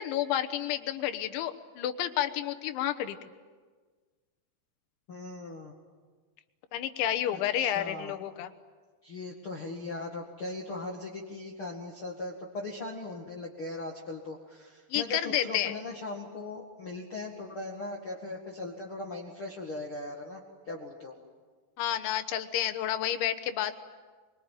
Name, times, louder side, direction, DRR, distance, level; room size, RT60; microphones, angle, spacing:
voice 1, 0.0-3.2 6.7-8.5 14.9-15.7 21.8-23.8, left 11 dB, 80° left, 7 dB, 3.5 m, -30 dB
voice 2, 5.1-5.7 7.3-8.1 9.0-21.2, left 2 dB, 45° left, -1 dB, 1.9 m, -39 dB
25.5 x 23.5 x 9.2 m, 1.4 s
omnidirectional pair, 5.3 m